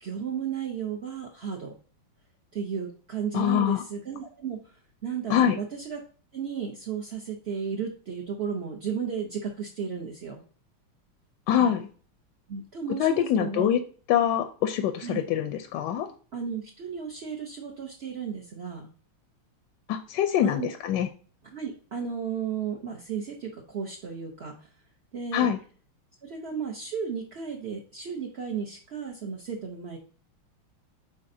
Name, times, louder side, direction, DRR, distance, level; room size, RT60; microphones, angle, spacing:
voice 1, 0.0-1.7 2.5-4.8 5.0-6.0 6.3-10.4 12.5-13.7 15.0-15.2 16.3-18.9 20.4-20.7 21.4-24.7 25.1-25.5 26.2-30.0, right 6 dB, 65° right, -1 dB, 0.6 m, -34 dB
voice 2, 3.3-3.8 5.3-5.6 11.5-11.9 13.0-13.8 14.1-16.1 19.9-21.1 25.3-25.6, left 10 dB, 75° left, 9 dB, 1.0 m, -24 dB
9.5 x 3.9 x 2.6 m, 0.41 s
omnidirectional pair, 2.3 m